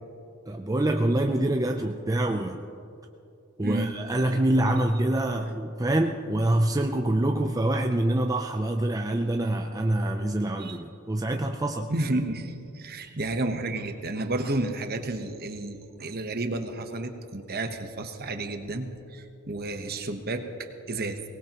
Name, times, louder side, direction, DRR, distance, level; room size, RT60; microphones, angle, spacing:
voice 1, 0.5-2.7 3.6-11.9, right 1 dB, 15° right, 4 dB, 0.5 m, -25 dB
voice 2, 3.6-3.9 10.6-10.8 11.9-21.2, right 2 dB, 45° right, 6 dB, 1.1 m, -31 dB
23.0 x 19.0 x 3.0 m, 2.7 s
head